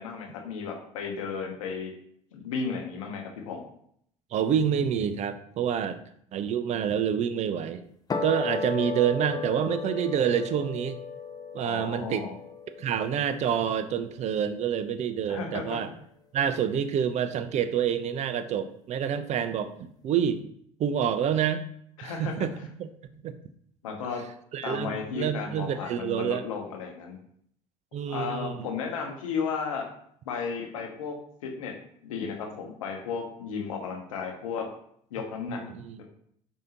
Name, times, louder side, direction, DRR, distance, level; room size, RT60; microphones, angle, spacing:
voice 1, 0.0-1.9 2.3-3.6 11.6-12.3 15.3-15.8 22.0-22.3 23.8-24.2 24.6-27.2 28.1-29.9 30.2-31.7 32.0-34.7 35.1-35.6, left 5 dB, 80° left, 2 dB, 0.7 m, -34 dB
voice 2, 4.3-6.0 6.3-7.8 8.2-11.0 11.5-12.2 12.8-15.9 16.3-20.5 20.8-21.6 22.0-22.5 22.8-22.9 23.2-23.3 24.5-26.5 27.9-28.7 35.5-36.0, right 8 dB, 45° right, 11 dB, 0.4 m, -27 dB
sound 1, 8.1-14.6, left 5 dB, 25° left, 0.5 m, -35 dB
4.8 x 2.6 x 2.8 m, 0.67 s
hypercardioid pair, 65°, 17 cm